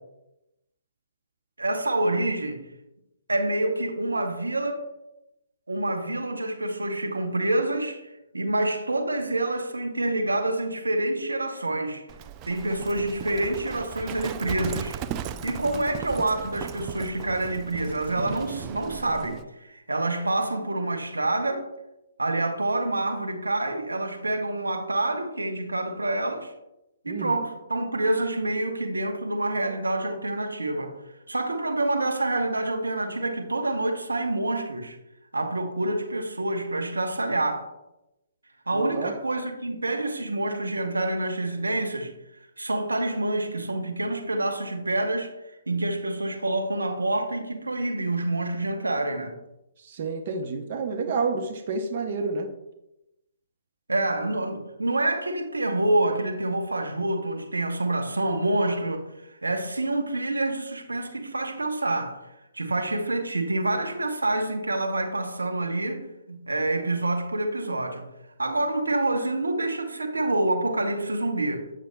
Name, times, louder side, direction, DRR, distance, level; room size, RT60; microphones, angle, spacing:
voice 1, 1.6-2.6 3.3-4.9 5.7-12.1 12.4-15.0 15.4-21.7 22.2-26.5 27.0-31.0 31.3-35.0 35.3-37.7 38.7-42.1 42.6-45.3 45.7-49.3 51.1-51.2 53.9-62.2 62.5-68.0 68.4-71.7, right 2 dB, 85° right, 1.0 m, -27 dB
Livestock farm animals working animals, 12.1-19.4, right 9 dB, 25° right, 0.3 m, -37 dB
voice 2, 27.1-27.4 38.7-39.1 49.8-52.5, right 4 dB, 50° right, 0.7 m, -29 dB
8.4 x 6.5 x 2.2 m
figure-of-eight pair, 130°, 0 cm